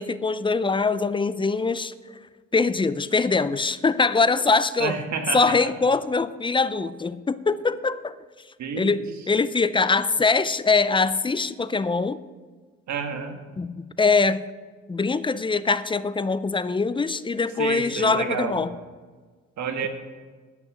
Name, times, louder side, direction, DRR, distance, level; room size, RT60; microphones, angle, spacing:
voice 1, 0.0-1.9 2.5-4.9 5.3-8.1 8.8-9.0 9.3-12.2 13.6-14.4 14.9-18.7, left 4 dB, 15° left, 15 dB, 0.4 m, -23 dB
voice 2, 4.8-5.7 8.6-8.9 12.9-13.4 17.6-18.5 19.6-19.9, right 5 dB, 70° right, 5 dB, 1.6 m, -29 dB
11.0 x 6.3 x 6.3 m, 1.5 s
cardioid pair, 90°, 30 cm